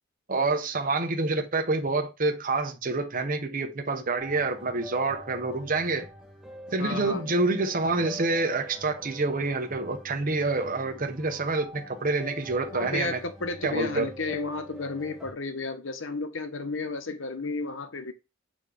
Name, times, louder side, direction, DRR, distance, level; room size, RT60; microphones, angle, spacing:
voice 1, 0.3-6.1 6.7-13.2 13.6-14.1, right 3 dB, 45° right, 1.0 m, -27 dB
sound 1, 4.2-15.3, left 1 dB, 5° right, 1.0 m, -45 dB
voice 2, 6.8-7.2 12.7-18.1, left 3 dB, 70° left, 1.0 m, -32 dB
6.9 x 3.1 x 5.0 m
head